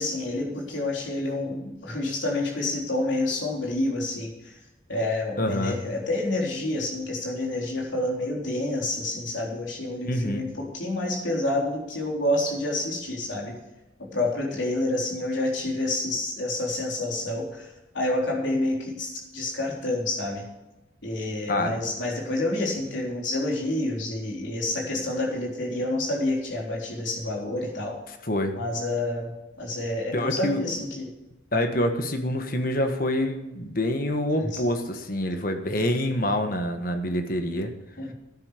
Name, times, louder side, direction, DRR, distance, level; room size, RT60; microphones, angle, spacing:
voice 1, 0.0-4.5 4.9-13.6 14.1-17.7 17.9-20.4 21.0-28.0 28.6-29.3 29.6-31.1 34.4-34.6 38.0-38.1, left 2 dB, 80° left, -2 dB, 3.7 m, -28 dB
voice 2, 5.4-5.8 10.0-10.4 21.5-21.7 28.3-28.5 30.1-30.7 31.5-37.7, left 1 dB, 45° left, 6 dB, 1.4 m, -26 dB
13.0 x 9.9 x 5.1 m, 1.0 s
head